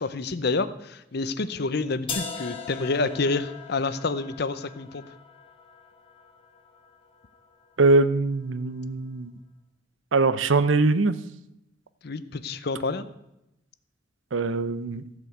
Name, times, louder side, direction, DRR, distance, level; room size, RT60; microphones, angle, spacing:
voice 1, 0.0-5.0 12.0-13.0, left 3 dB, 55° left, 13 dB, 0.7 m, -28 dB
sound 1, 2.1-8.0, left 5 dB, 30° left, 1.4 m, -40 dB
voice 2, 7.8-9.3 10.1-11.1 14.3-15.0, right 3 dB, 85° right, 14 dB, 0.7 m, -22 dB
15.0 x 5.2 x 7.9 m, 0.86 s
head